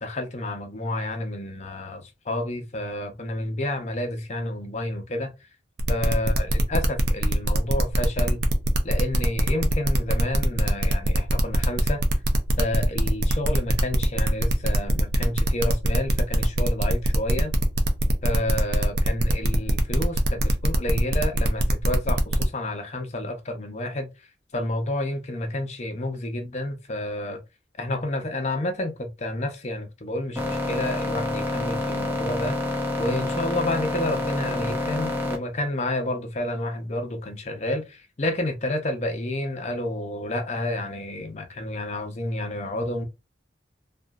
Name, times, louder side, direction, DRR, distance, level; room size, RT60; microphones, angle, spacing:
voice 1, 0.0-5.3 5.9-8.4 8.8-12.0 12.6-17.5 18.2-24.1 24.5-27.4 27.8-32.6 33.0-43.0, left 1 dB, 40° left, 0.6 m, -30 dB
sound 1, 5.8-22.4, right 1 dB, 70° right, 0.5 m, -24 dB
sound 2, 30.4-35.4, left 1 dB, 10° right, 0.5 m, -28 dB
2.8 x 2.4 x 2.3 m
head